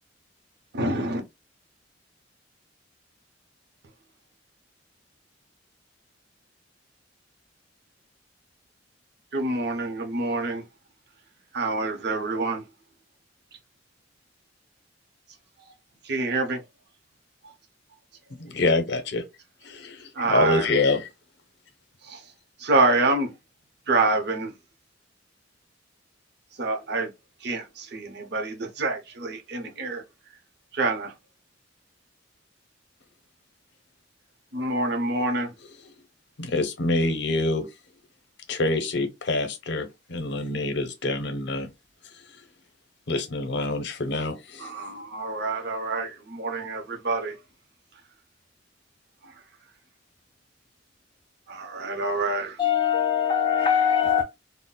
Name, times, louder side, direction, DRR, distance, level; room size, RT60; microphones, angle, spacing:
voice 1, 0.7-1.2 9.3-10.6 11.5-12.6 15.6-15.7 16.0-16.6 17.4-17.5 20.1-20.7 22.0-22.2 22.6-23.3 23.9-24.5 26.6-27.1 27.4-30.0 30.7-31.1 34.5-35.5 44.6-47.3 49.2-49.3 51.5-52.6, right 2 dB, 60° right, 0.7 m, -27 dB
voice 2, 18.3-19.2 19.6-21.1 36.4-37.7 38.5-41.7 43.1-44.7, left 2 dB, 65° left, 0.6 m, -26 dB
voice 3, 52.6-54.2, left 8 dB, 25° left, 0.4 m, -22 dB
3.8 x 2.1 x 2.2 m
head